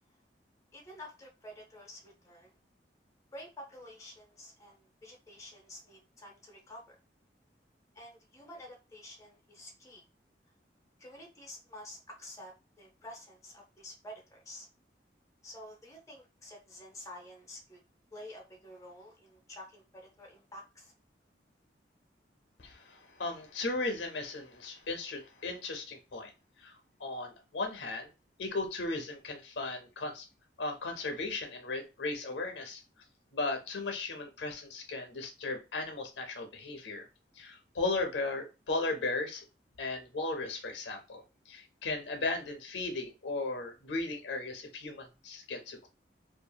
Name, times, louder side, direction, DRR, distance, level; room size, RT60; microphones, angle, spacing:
voice 1, 0.7-2.5 3.3-7.0 7.9-10.0 11.0-14.7 15.4-17.8 18.1-20.9, left 1 dB, 20° left, 0 dB, 0.7 m, -49 dB
voice 2, 22.6-26.3 26.6-28.1 28.4-30.3 30.6-32.8 33.3-37.1 37.4-39.4 39.8-45.9, left 3 dB, 85° left, 5 dB, 0.7 m, -36 dB
2.7 x 2.5 x 2.2 m, 0.28 s
head